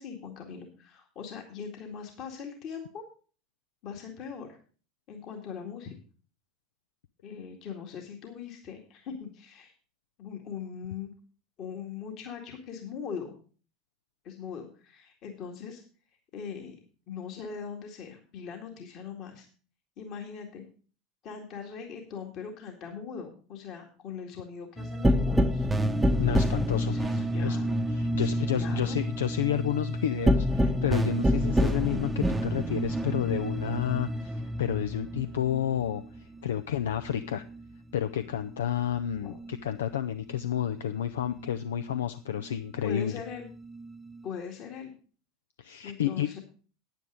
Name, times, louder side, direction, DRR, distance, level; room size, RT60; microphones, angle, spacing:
voice 1, 0.0-3.0 3.8-4.6 5.1-5.9 7.2-9.7 10.2-11.1 11.6-13.4 14.2-15.8 16.3-16.8 17.1-19.5 20.0-20.6 21.2-25.7 26.9-27.7 28.2-29.0 39.2-39.4 42.8-43.5 44.2-44.9 45.8-46.4, left 6 dB, 50° left, 2 dB, 2.0 m, -40 dB
sound 1, 24.8-37.8 38.1-40.0 40.3-42.0 42.4-44.2, equal, 10° right, 0.8 m, -29 dB
voice 2, 26.2-26.9 27.4-27.6 27.9-37.4 37.9-43.2 45.6-46.3, left 11 dB, 70° left, 11 dB, 0.4 m, -30 dB
9.6 x 9.2 x 4.9 m, 0.40 s
figure-of-eight pair, 75°, 0 cm